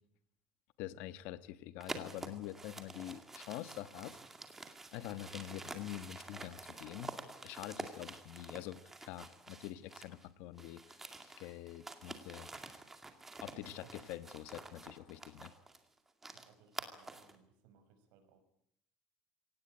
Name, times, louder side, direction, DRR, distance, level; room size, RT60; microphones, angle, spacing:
voice 1, 0.8-4.2 4.9-7.2 7.4-12.5 13.4-15.5, left 14 dB, 75° left, 13 dB, 1.2 m, -46 dB
sound 1, 1.8-10.2 10.5-17.4, right 3 dB, 10° right, 2.2 m, -49 dB
voice 2, 13.4-14.0 16.3-18.4, right 7 dB, 90° right, 9 dB, 5.4 m, -64 dB
25.0 x 18.0 x 8.9 m, 0.70 s
cardioid pair, 165°, 3 cm